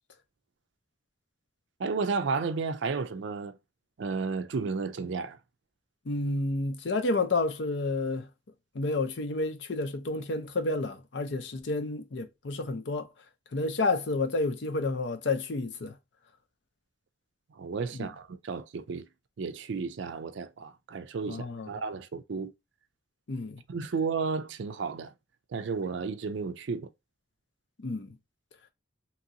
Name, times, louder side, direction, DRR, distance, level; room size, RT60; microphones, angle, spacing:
voice 1, 1.8-3.5 4.0-5.4 17.6-19.1 19.4-22.5 23.7-25.1 25.5-26.9, right 4 dB, 70° right, 0.4 m, -32 dB
voice 2, 6.1-8.3 8.7-13.1 13.5-15.9 18.0-18.1 21.3-21.7 23.3-23.6 27.8-28.1, left 3 dB, 65° left, 0.6 m, -30 dB
3.0 x 2.8 x 2.5 m
head